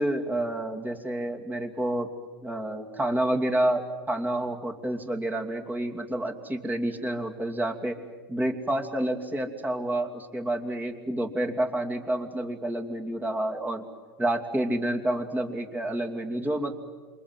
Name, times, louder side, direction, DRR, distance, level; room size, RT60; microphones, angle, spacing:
voice 1, 0.0-2.1 2.4-8.0 8.3-13.9 14.2-16.7, right 1 dB, 15° right, 3 dB, 2.8 m, -29 dB
28.0 x 24.5 x 7.8 m, 1.4 s
hypercardioid pair, 95°, 13 cm